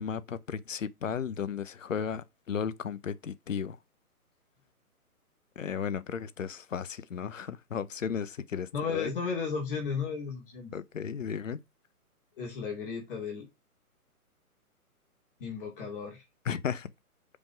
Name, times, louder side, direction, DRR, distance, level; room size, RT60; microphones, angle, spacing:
voice 1, 0.0-3.8 5.6-9.1 10.7-11.6 16.5-16.9, left 7 dB, 55° left, 0.7 m, -34 dB
voice 2, 8.7-10.7 12.4-13.5 15.4-16.2, left 5 dB, 35° left, 2.5 m, -34 dB
5.3 x 5.2 x 4.6 m
figure-of-eight pair, 135°, 45 cm